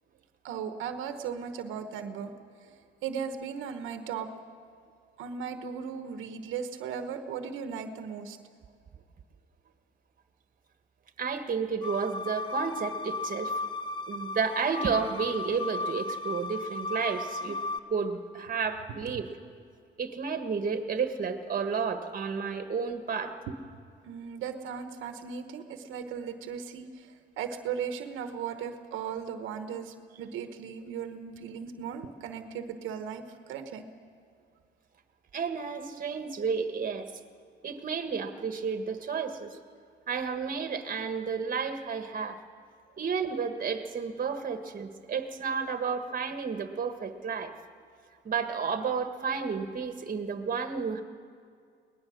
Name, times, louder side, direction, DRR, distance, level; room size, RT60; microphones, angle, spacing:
voice 1, 0.4-2.3 2.6-2.7 3.0-4.3 5.2-8.4 24.0-33.8, right 7 dB, 90° right, 8 dB, 1.1 m, -37 dB
voice 2, 11.2-13.5 14.1-17.6 17.9-19.3 20.0-23.3 35.3-37.1 37.6-39.6 40.1-42.4 43.0-47.5 48.2-51.0, right 5 dB, 45° right, 7 dB, 1.6 m, -31 dB
sound 1, 11.8-17.8, left 3 dB, 25° left, 0.7 m, -35 dB
22.5 x 18.5 x 6.3 m, 2.2 s
cardioid pair, 90°, 20 cm